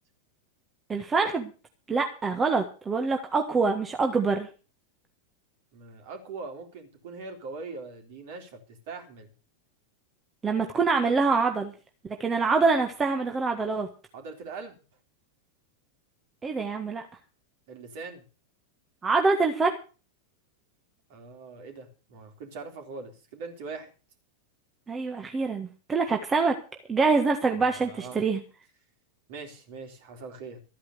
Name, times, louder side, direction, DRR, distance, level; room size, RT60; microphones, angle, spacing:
voice 1, 0.9-1.5 1.9-4.5 10.4-11.7 12.2-13.9 16.4-17.0 19.0-19.7 24.9-26.6 26.9-28.4, right 4 dB, 15° right, 4 dB, 1.6 m, -25 dB
voice 2, 5.7-9.3 14.1-14.8 17.7-18.2 21.1-23.9 27.5-28.2 29.3-30.6, right 4 dB, 50° right, 4 dB, 3.8 m, -41 dB
13.5 x 9.5 x 6.6 m, 0.36 s
figure-of-eight pair, 90°, 0 cm